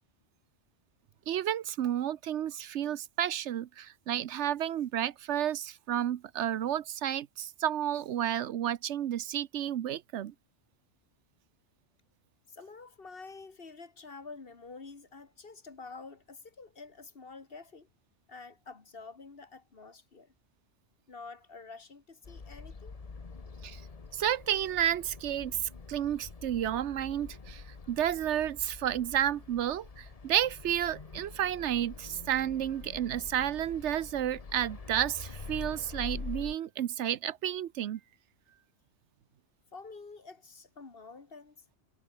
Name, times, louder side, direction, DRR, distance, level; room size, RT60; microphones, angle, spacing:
voice 1, 1.3-10.3 23.6-23.8 24.1-25.6 25.9-38.0, right 10 dB, 75° right, 1.0 m, -31 dB
voice 2, 12.5-17.9 18.3-20.3 21.1-23.0 39.7-41.6, left 4 dB, 55° left, 2.0 m, -48 dB
sound 1, 22.2-36.5, left 4 dB, 35° left, 1.2 m, -45 dB
omnidirectional pair, 1.2 m